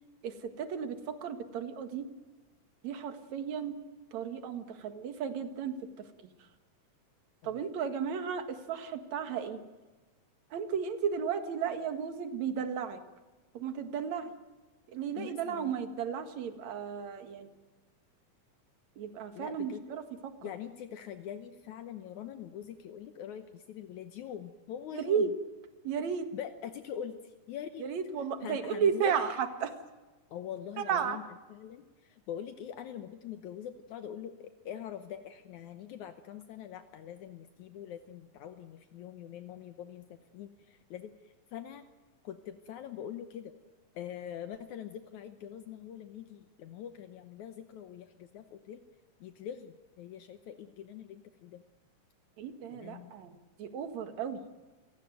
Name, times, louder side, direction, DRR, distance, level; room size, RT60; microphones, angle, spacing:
voice 1, 0.2-2.1 2.8-3.8 4.1-5.7 7.4-9.6 10.5-13.0 13.5-14.3 14.9-17.6 19.0-20.5 24.9-25.3 25.8-26.3 27.8-29.7 30.8-31.2 52.4-54.4, right 7 dB, 65° right, 8 dB, 2.9 m, -34 dB
voice 2, 15.2-15.8 19.3-19.8 20.4-25.3 26.3-27.9 28.4-29.3 30.3-31.2 31.5-41.9 42.2-43.5 43.9-48.8 49.2-51.6 52.7-53.1, left 9 dB, 75° left, 8 dB, 2.3 m, -43 dB
27.5 x 17.5 x 9.2 m, 1.2 s
omnidirectional pair, 3.6 m